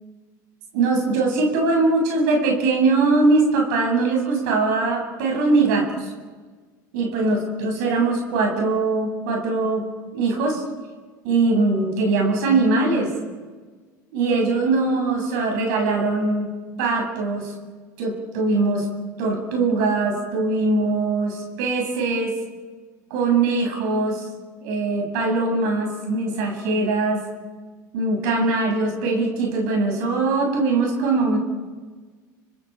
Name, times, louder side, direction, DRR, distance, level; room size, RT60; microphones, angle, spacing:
voice 1, 0.7-6.1 6.9-9.9 10.1-10.6 11.2-13.1 14.1-16.5 16.8-17.5 18.0-18.9 19.2-22.3 23.1-24.2 24.6-27.2 27.9-31.4, right 3 dB, 75° right, 1 dB, 7.9 m, -21 dB
30.0 x 26.5 x 5.1 m, 1.4 s
hypercardioid pair, 80°, 10 cm